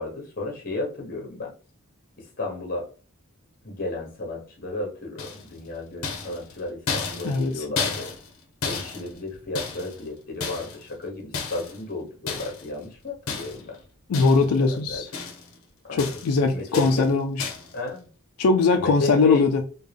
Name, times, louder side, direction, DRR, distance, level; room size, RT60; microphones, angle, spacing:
voice 1, 0.0-1.5 2.2-2.9 3.6-8.1 8.6-13.8 14.4-15.0 15.8-16.1 16.5-17.1 17.7-18.1 18.7-19.5, left 2 dB, 40° left, 1.1 m, -33 dB
sound 1, 5.2-5.6 6.0-8.4 8.6-10.0 10.4-10.9 11.3-11.8 12.3-12.7 13.3-13.7 14.1-14.6 14.9-15.6 16.0-16.4 16.7-17.1 17.4-17.7, left 5 dB, 65° left, 0.8 m, -33 dB
voice 2, 7.2-7.6 14.1-15.1 16.0-17.4 18.4-19.6, left 4 dB, 80° left, 0.4 m, -20 dB
3.6 x 2.3 x 3.3 m
head